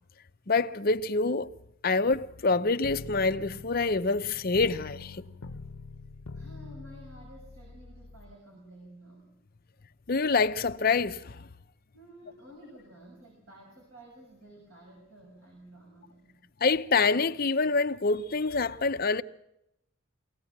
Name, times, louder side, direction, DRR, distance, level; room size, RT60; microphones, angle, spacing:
voice 1, 0.5-1.5 1.8-5.2 10.1-11.5 16.6-19.2, left 4 dB, 45° left, 0.7 m, -26 dB
sound 1, 2.8-8.3, left 3 dB, 75° left, 0.8 m, -44 dB
voice 2, 6.3-9.3 11.9-16.4, right 1 dB, 80° right, 6.5 m, -52 dB
24.0 x 17.5 x 7.3 m
head